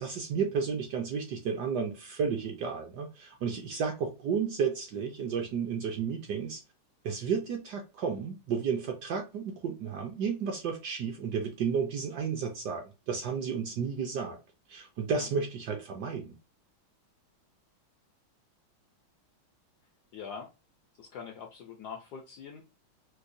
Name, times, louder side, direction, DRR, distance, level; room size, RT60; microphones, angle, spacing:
voice 1, 0.0-6.6 7.0-14.4 14.7-16.4, right 6 dB, 70° right, 1.0 m, -32 dB
voice 2, 20.1-20.5 21.0-22.6, left 6 dB, 75° left, 0.9 m, -43 dB
4.6 x 2.0 x 2.6 m
omnidirectional pair, 2.3 m